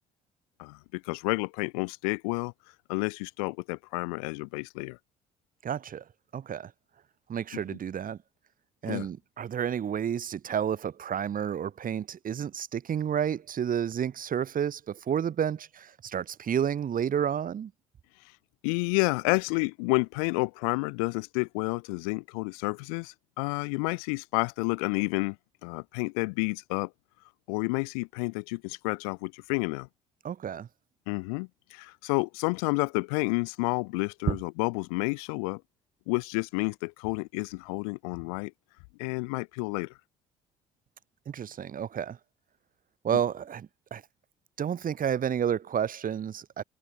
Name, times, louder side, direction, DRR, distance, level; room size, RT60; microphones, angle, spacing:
voice 1, 0.6-2.5 2.9-5.0 7.5-7.8 8.9-9.1 18.6-25.4 25.6-26.9 27.5-29.9 31.1-35.6 36.1-38.5 39.0-39.9, left 32 dB, 75° left, 7.7 m, -30 dB
voice 2, 5.6-6.0 6.3-6.7 7.3-8.2 8.8-17.7 30.2-30.7 34.3-34.4 41.3-42.2 43.0-44.0 44.6-46.6, right 8 dB, 50° right, 6.9 m, -30 dB
hypercardioid pair, 55°, 19 cm